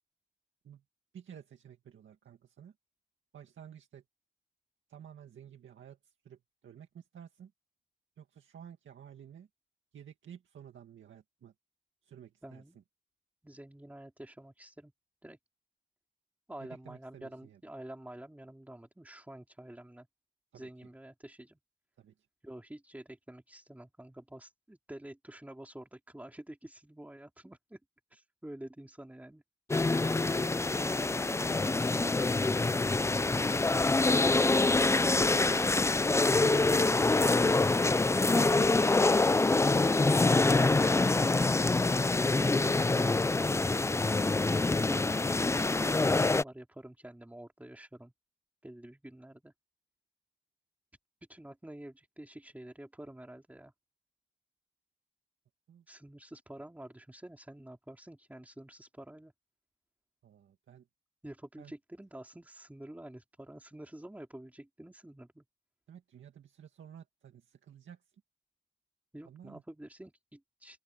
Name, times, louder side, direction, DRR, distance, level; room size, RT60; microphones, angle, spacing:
voice 1, 1.1-2.8 3.3-4.0 4.9-7.5 8.2-9.5 9.9-11.5 12.0-12.8 16.6-17.6 20.5-20.7 22.0-22.3 55.7-55.9 60.2-60.9 61.6-61.7 65.9-68.1 69.2-69.6, right 9 dB, 80° right, 2.0 m, -53 dB
voice 2, 12.4-12.8 13.4-14.9 15.2-15.4 16.5-20.1 20.5-21.6 22.4-27.8 28.1-29.4 30.8-33.5 38.1-39.0 40.0-42.0 42.3-43.8 44.7-48.1 48.6-49.5 51.3-53.7 55.9-59.3 61.2-65.4 69.1-70.8, right 1 dB, 10° right, 3.2 m, -48 dB
sound 1, 29.7-46.4, left 3 dB, 15° left, 0.4 m, -26 dB
open air
wide cardioid pair, 105°, 19 cm